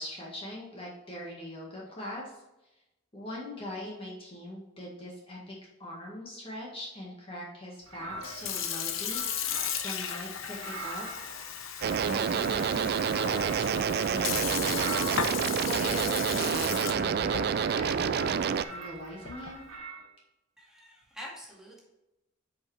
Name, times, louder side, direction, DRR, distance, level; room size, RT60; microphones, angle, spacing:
voice 1, 0.0-2.3 3.1-9.5 9.8-11.1 12.1-12.9 13.2-19.6, left 1 dB, 30° left, -3 dB, 1.7 m, -41 dB
sound 1, 7.9-10.0 10.4-15.5 16.2-17.8 18.1-20.1, right 2 dB, 90° right, 2.0 m, -44 dB
Sink (filling or washing) / Fill (with liquid), 8.1-19.7, left 8 dB, 75° left, 0.8 m, -36 dB
sound 2, 11.8-18.6, right 7 dB, 50° right, 0.3 m, -28 dB
voice 2, 20.6-21.8, equal, 5° right, -4 dB, 2.1 m, -46 dB
8.2 x 5.1 x 3.3 m, 0.94 s
head